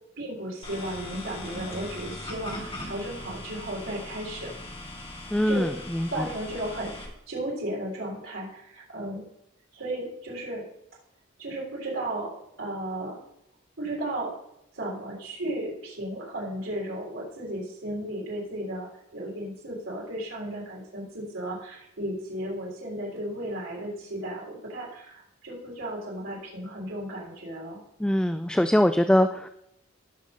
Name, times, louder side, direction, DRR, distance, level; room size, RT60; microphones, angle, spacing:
voice 1, 0.2-4.5 5.5-5.6 6.1-9.2 9.7-10.6 11.4-13.2 13.8-14.3 14.7-27.8, right 1 dB, 90° right, -4 dB, 3.8 m, -34 dB
sound 1, 0.6-7.1, left 2 dB, 30° left, 2.4 m, -40 dB
voice 2, 5.3-6.3 28.0-29.5, left 1 dB, 5° left, 9 dB, 0.3 m, -23 dB
17.5 x 6.5 x 3.7 m, 0.81 s
head